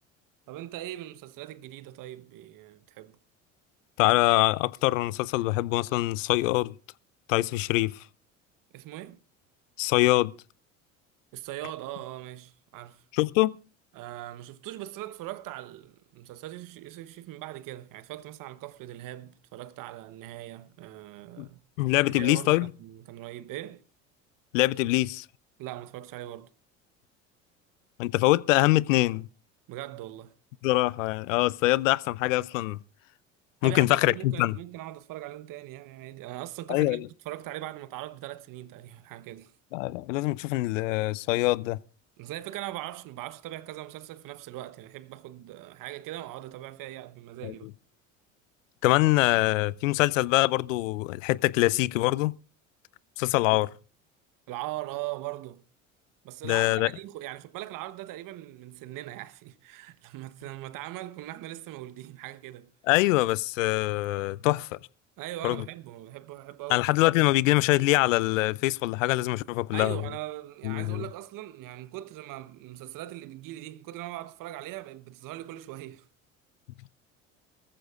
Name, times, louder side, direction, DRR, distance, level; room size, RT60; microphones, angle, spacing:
voice 1, 0.5-3.2 8.7-9.2 11.3-13.0 13.9-21.6 22.1-23.8 25.6-26.5 29.7-30.3 33.6-39.5 42.2-47.7 53.5-53.7 54.5-55.6 56.2-62.7 65.2-66.9 69.7-76.1, right 15 dB, 55° right, 1.1 m, -40 dB
voice 2, 4.0-6.7 7.3-8.0 9.8-10.3 13.1-13.6 21.4-21.5 21.8-22.7 24.5-25.3 28.0-29.3 30.6-32.8 33.6-34.6 36.7-37.0 39.7-41.8 47.4-47.5 48.8-52.3 53.2-53.7 56.4-56.9 62.9-64.8 65.4-65.6 66.7-70.0 70.6-71.0, left 19 dB, 75° left, 0.6 m, -24 dB
23.0 x 14.5 x 2.4 m
hypercardioid pair, 65°, 39 cm